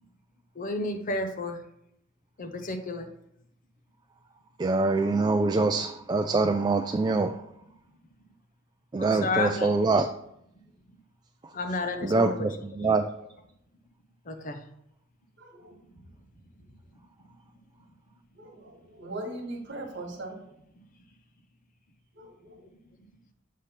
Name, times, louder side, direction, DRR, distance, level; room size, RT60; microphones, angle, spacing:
voice 1, 0.5-1.6 2.4-3.1 9.0-9.8 11.5-12.5 12.8-13.0 14.2-14.6 22.7-22.8, left 2 dB, 45° left, 6 dB, 0.8 m, -32 dB
voice 2, 4.6-7.3 8.9-10.1 12.0-13.0, right 3 dB, 20° right, 5 dB, 0.3 m, -24 dB
voice 3, 15.4-15.8 18.3-20.4 22.1-22.7, right 1 dB, 60° right, 2 dB, 1.5 m, -40 dB
7.5 x 3.4 x 5.6 m, 0.75 s
head